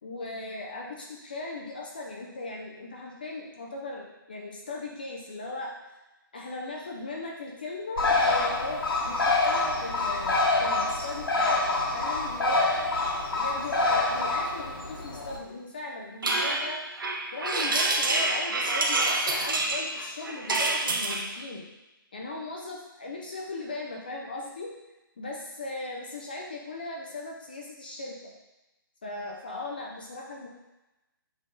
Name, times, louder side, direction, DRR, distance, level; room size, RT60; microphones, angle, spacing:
voice 1, 0.0-5.8 6.3-12.7 13.4-16.8 17.3-21.7 22.1-24.7 25.2-28.3 29.0-30.5, left 2 dB, 25° left, -1 dB, 0.5 m, -38 dB
Bird, 8.0-15.4, left 2 dB, 85° left, 1.4 m, -26 dB
sound 1, 16.2-21.3, right 2 dB, 65° right, 0.9 m, -27 dB
7.6 x 3.4 x 3.8 m, 1.0 s
hypercardioid pair, 180°, 12 cm